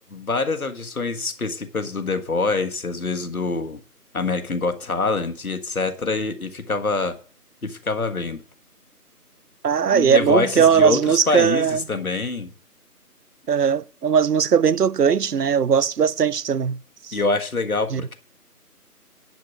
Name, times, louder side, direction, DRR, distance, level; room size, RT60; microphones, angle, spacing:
voice 1, 0.1-3.8 4.1-7.1 7.6-8.4 9.9-12.5 17.1-18.2, left 3 dB, 65° left, 1.6 m, -25 dB
voice 2, 9.6-11.8 13.5-16.8 17.0-17.2 17.9-18.0, right 7 dB, 75° right, 0.7 m, -19 dB
10.5 x 5.2 x 8.1 m
figure-of-eight pair, 170°, 47 cm